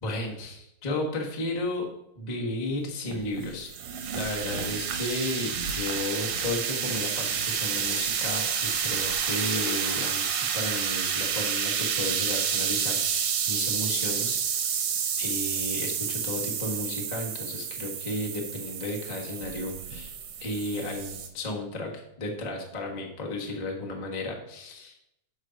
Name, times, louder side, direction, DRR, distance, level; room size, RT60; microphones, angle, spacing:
voice 1, 0.0-1.9 2.1-3.7 4.1-14.4 14.7-14.9 15.2-20.1 20.4-24.9, left 2 dB, 75° left, -1 dB, 0.3 m, -33 dB
sound 1, 3.1-21.3, right 7 dB, 65° right, 1.7 m, -29 dB
6.4 x 6.4 x 5.1 m, 0.84 s
omnidirectional pair, 3.3 m